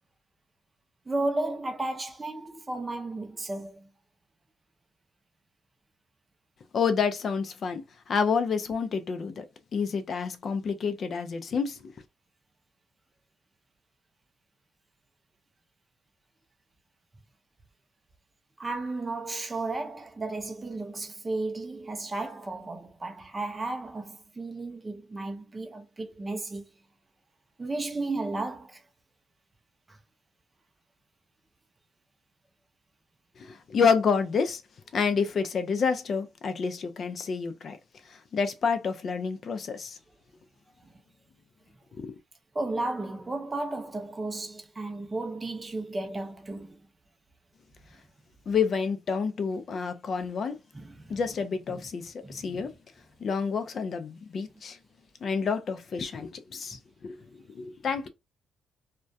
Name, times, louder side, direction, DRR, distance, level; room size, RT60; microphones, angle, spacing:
voice 1, 1.1-3.9 18.6-26.7 27.6-28.8 29.9-30.0 40.8-40.9 42.5-46.8 50.7-51.2 52.2-52.7, right 2 dB, 20° right, 0.6 m, -34 dB
voice 2, 6.7-9.5 9.7-11.9 33.4-34.6 34.9-37.8 38.3-40.0 41.9-42.1 48.5-50.6 51.1-52.7 53.2-54.8 55.2-58.1, left 5 dB, 50° left, 0.4 m, -29 dB
2.3 x 2.2 x 2.6 m
cardioid pair, 90°, 0 cm